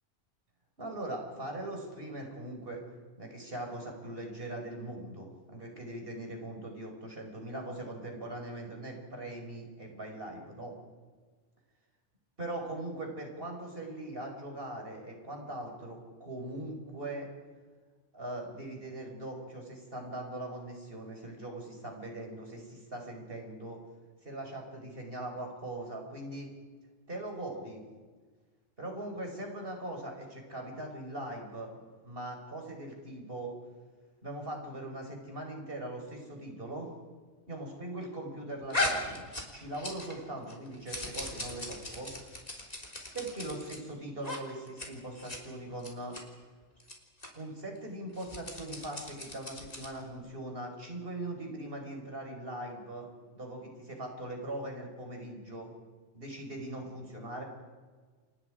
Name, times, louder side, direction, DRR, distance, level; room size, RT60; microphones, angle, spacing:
voice 1, 0.8-2.8 3.2-10.7 12.4-17.3 18.1-23.8 24.2-26.5 27.1-27.9 28.8-33.5 34.2-36.9 37.5-42.1 43.1-46.1 47.3-53.1 53.3-55.7 56.1-57.4, right 1 dB, 45° right, 2 dB, 5.3 m, -41 dB
sound 1, 38.7-40.2 40.5-43.8 44.2-44.4 44.7-44.9 45.2-45.4 45.8-46.2 46.8-46.9 47.2-47.3 48.1-50.0, left 2 dB, 30° left, 3.6 m, -37 dB
29.5 x 25.5 x 5.0 m, 1.5 s
omnidirectional pair, 1.3 m